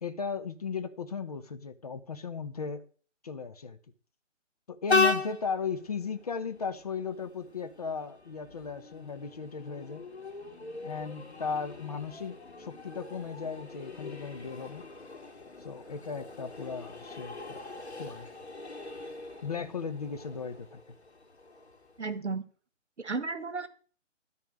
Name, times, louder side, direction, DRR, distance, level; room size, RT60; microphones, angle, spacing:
voice 1, 0.0-2.8 3.2-3.8 4.7-10.0 10.8-14.9 15.6-17.7 18.0-18.3 19.4-20.8, left 5 dB, 30° left, 9 dB, 0.9 m, -36 dB
Train, 4.9-22.2, left 4 dB, 55° left, 3.2 m, -37 dB
voice 2, 22.0-22.4 23.0-23.7, right 4 dB, 60° right, 13 dB, 1.6 m, -33 dB
13.5 x 4.7 x 8.7 m, 0.41 s
figure-of-eight pair, 145°, 38 cm